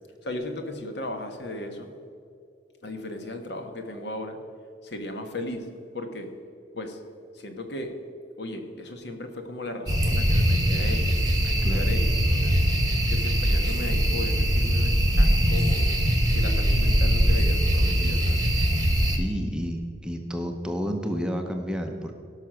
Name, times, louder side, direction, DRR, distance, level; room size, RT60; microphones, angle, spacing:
voice 1, 0.2-1.9 2.8-4.4 4.8-6.3 6.7-7.0 7.3-7.9 8.4-11.2 11.4-12.6 13.1-15.9 16.3-18.4, left 1 dB, 55° left, 5 dB, 1.3 m, -36 dB
sound 1, 9.9-19.2, equal, 20° right, 1.1 m, -22 dB
voice 2, 19.0-22.2, equal, 5° right, 3 dB, 0.7 m, -31 dB
17.5 x 5.9 x 6.2 m, 2.5 s
head